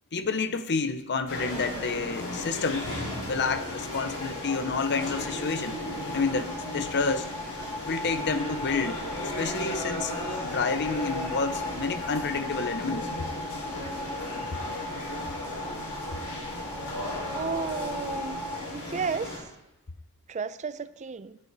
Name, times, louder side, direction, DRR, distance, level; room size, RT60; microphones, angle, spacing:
voice 1, 0.1-2.9 3.2-5.7 6.1-7.3 7.8-10.1 10.4-13.1, left 4 dB, 50° left, 11 dB, 0.8 m, -29 dB
sound 1, 1.3-19.4, left 1 dB, 70° left, 5.2 m, -35 dB
sound 2, 3.0-18.6, left 2 dB, 10° left, 1.0 m, -39 dB
voice 2, 17.3-18.4 18.7-19.4 20.3-21.4, right 5 dB, 35° right, 13 dB, 0.5 m, -33 dB
16.0 x 9.1 x 4.1 m, 0.98 s
head